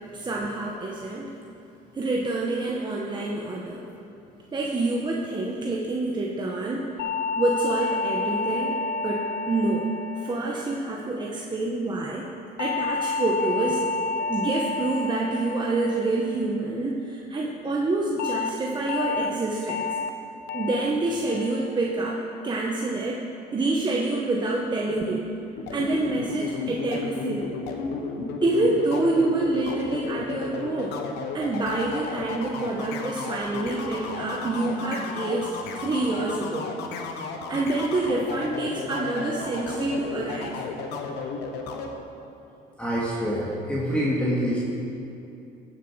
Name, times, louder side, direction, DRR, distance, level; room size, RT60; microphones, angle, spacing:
voice 1, 0.1-1.4 1.9-3.9 4.5-7.0 7.4-12.3 12.6-13.8 14.3-19.9 20.5-23.2 23.5-25.3 25.7-27.5 28.4-31.0 31.3-35.5 35.8-36.7 37.5-40.6, right 2 dB, 25° right, -2 dB, 1.1 m, -27 dB
sound 1, 7.0-11.5 12.6-17.1 18.2-18.5 18.9-19.3 19.7-20.1 20.5-20.9 21.3-21.7 22.1-22.5, left 4 dB, 70° left, 0.6 m, -30 dB
sound 2, 25.6-41.9, left 5 dB, 85° left, 1.1 m, -33 dB
voice 2, 42.8-44.6, equal, 5° left, -7 dB, 2.1 m, -27 dB
15.0 x 7.3 x 4.7 m, 2.8 s
cardioid pair, 110°, 17 cm